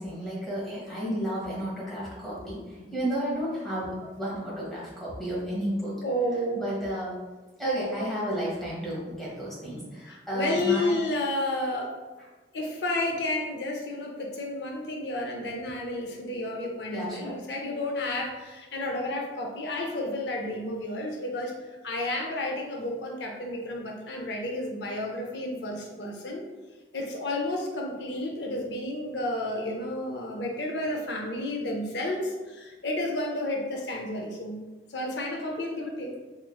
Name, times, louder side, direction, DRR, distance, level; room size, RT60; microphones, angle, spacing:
voice 1, 0.0-6.0 6.5-7.2 7.6-11.0 16.9-17.4, right 1 dB, ahead, -7 dB, 1.2 m, -32 dB
voice 2, 6.0-6.6 10.1-12.0 12.5-26.4 26.9-34.6 34.9-36.1, left 1 dB, 80° left, 1 dB, 0.6 m, -31 dB
4.2 x 3.1 x 2.2 m, 1.2 s
head